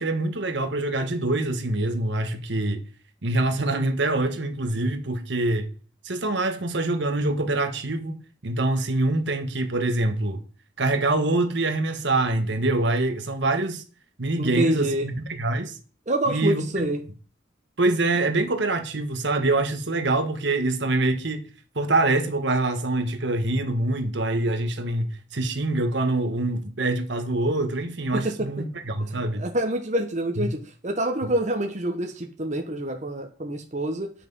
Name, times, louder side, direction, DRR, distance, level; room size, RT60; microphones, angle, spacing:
voice 1, 0.0-2.8 3.2-5.7 6.0-8.2 8.4-10.4 10.8-13.8 14.2-15.8 16.3-16.9 17.8-21.4 21.7-29.5 30.4-30.5, right 2 dB, 60° right, 1.3 m, -25 dB
voice 2, 14.4-15.1 16.1-17.0 28.1-28.5 29.4-34.1, right 1 dB, 35° right, 1.1 m, -26 dB
10.0 x 6.1 x 5.5 m
head